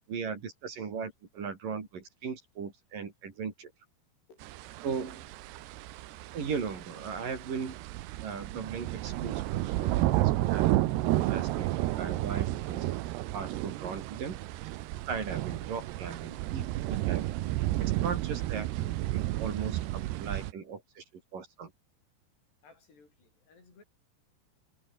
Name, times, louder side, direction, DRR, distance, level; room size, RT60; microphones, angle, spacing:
voice 1, 0.1-3.7 4.8-5.3 6.3-7.7 8.2-10.8 11.1-12.8 13.3-14.4 15.1-17.2 17.6-21.0 21.3-21.7, right 6 dB, 55° right, 5.0 m, -38 dB
sound 1, 4.4-20.5, right 16 dB, 80° right, 3.1 m, -32 dB
voice 2, 22.6-23.8, left 4 dB, 75° left, 10.0 m, -59 dB
omnidirectional pair, 4.9 m